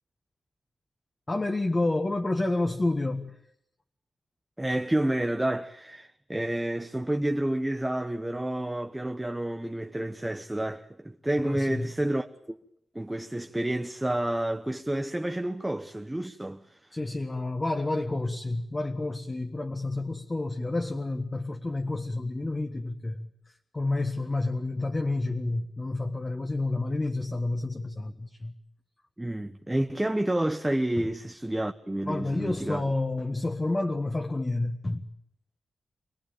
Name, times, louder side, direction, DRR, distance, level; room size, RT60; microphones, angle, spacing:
voice 1, 1.3-3.4 11.4-11.9 16.9-28.5 31.0-31.1 32.1-35.1, left 2 dB, 25° left, 1.5 m, -29 dB
voice 2, 4.6-12.6 12.9-17.0 29.2-32.8, right 1 dB, 10° right, 0.9 m, -29 dB
26.0 x 19.0 x 8.9 m
wide cardioid pair, 110°, 0 cm